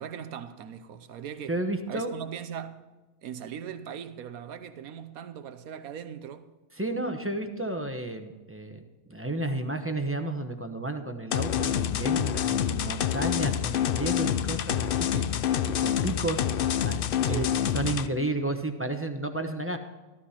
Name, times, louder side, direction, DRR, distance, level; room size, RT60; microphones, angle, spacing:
voice 1, 0.0-1.6 1.9-2.9 3.2-6.5 17.2-17.6, right 8 dB, 80° right, 1.3 m, -39 dB
voice 2, 1.5-2.1 6.7-8.8 9.1-15.3 15.8-16.5 16.8-19.8, right 2 dB, 10° right, 0.8 m, -32 dB
sound 1, 11.3-18.1, left 9 dB, 65° left, 0.5 m, -27 dB
14.5 x 13.0 x 4.3 m
omnidirectional pair, 1.5 m